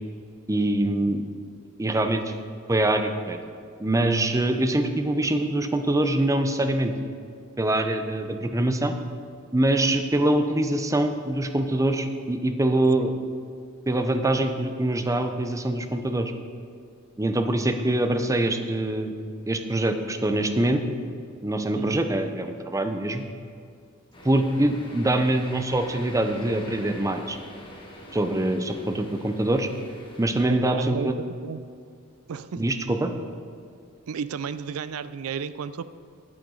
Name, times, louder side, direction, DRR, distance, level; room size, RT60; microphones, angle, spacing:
voice 1, 0.5-1.2 1.8-2.2 2.7-3.4 3.8-6.9 7.6-9.0 9.5-13.2 13.9-16.3 17.2-19.1 19.5-20.8 21.4-23.2 24.2-27.4 28.1-29.7 30.2-31.2 32.6-33.1, right 1 dB, 15° right, 7 dB, 0.6 m, -24 dB
sound 1, 24.1-30.4, left 1 dB, 25° left, 1.4 m, -44 dB
voice 2, 30.5-31.6 32.3-32.7 34.1-35.8, right 6 dB, 85° right, 14 dB, 0.4 m, -33 dB
11.0 x 8.9 x 3.8 m, 2.3 s
head